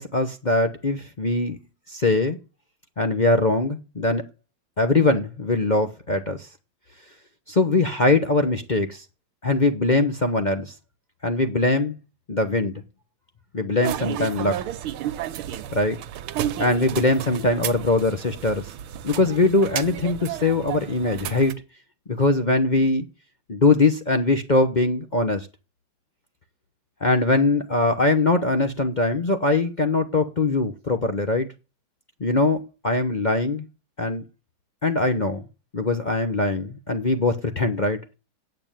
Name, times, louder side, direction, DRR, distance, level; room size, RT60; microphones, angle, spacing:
voice 1, 0.0-1.6 1.9-2.4 3.0-4.2 4.8-6.5 7.5-9.0 9.4-10.7 11.2-12.0 12.3-12.8 13.5-14.6 15.7-16.0 16.6-18.7 19.0-21.5 22.1-23.0 23.5-25.5 27.0-31.5 32.2-32.6 32.8-33.6 34.0-34.2 34.8-35.4 35.7-38.0, left 2 dB, 45° left, 0.5 m, -22 dB
sound 1, 13.8-21.5, right 11 dB, 80° right, 1.7 m, -32 dB
8.8 x 7.9 x 9.0 m
omnidirectional pair, 2.3 m